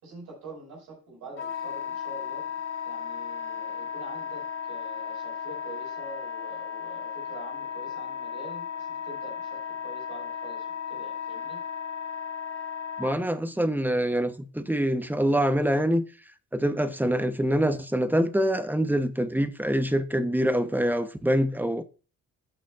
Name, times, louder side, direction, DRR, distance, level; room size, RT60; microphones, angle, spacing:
voice 1, 0.0-2.5 2.8-11.6, right 2 dB, 85° right, 5.2 m, -45 dB
Wind instrument woodwind instrument, 1.4-13.2, left 7 dB, 40° left, 2.2 m, -35 dB
voice 2, 13.0-16.0 16.5-21.8, equal, 5° right, 0.9 m, -25 dB
15.5 x 6.3 x 2.4 m
cardioid pair, 90°, 30 cm